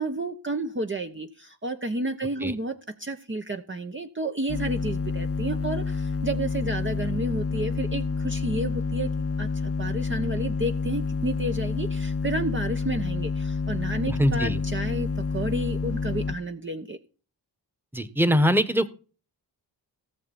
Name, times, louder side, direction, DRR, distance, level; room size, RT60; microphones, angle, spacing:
voice 1, 0.0-9.1 9.4-17.0, right 1 dB, 25° right, 5 dB, 1.0 m, -31 dB
sound 1, 4.5-16.3, left 4 dB, 30° left, 0.9 m, -28 dB
voice 2, 14.2-14.6 17.9-18.9, equal, 5° right, 12 dB, 1.4 m, -22 dB
17.5 x 6.8 x 4.3 m, 0.37 s
cardioid pair, 55°, 44 cm